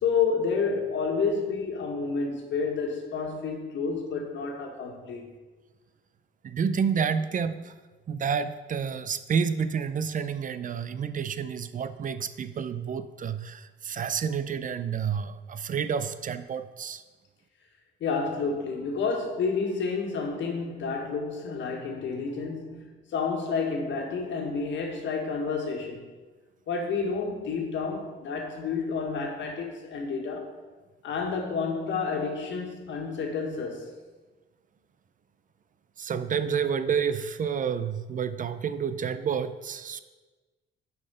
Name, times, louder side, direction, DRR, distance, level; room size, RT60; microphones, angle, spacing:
voice 1, 0.0-5.2 18.0-26.0 26.7-30.5 31.0-33.9, left 5 dB, 70° left, 2 dB, 1.6 m, -30 dB
voice 2, 6.4-7.7 8.1-17.0 36.0-40.0, right 7 dB, 40° right, 12 dB, 0.5 m, -29 dB
7.2 x 5.5 x 5.5 m, 1.2 s
cardioid pair, 90°, 20 cm